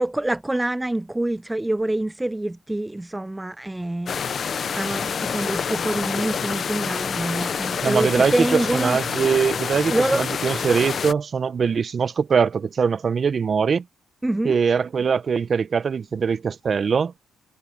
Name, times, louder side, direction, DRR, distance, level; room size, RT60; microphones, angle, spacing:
voice 1, 0.0-9.0 9.9-10.2 14.2-14.6, right 1 dB, 10° right, 0.5 m, -26 dB
sound 1, 4.1-11.1, left 6 dB, 50° left, 0.7 m, -27 dB
voice 2, 7.8-13.8 14.4-17.1, right 6 dB, 45° right, 1.0 m, -22 dB
cardioid pair, 90°, 0 cm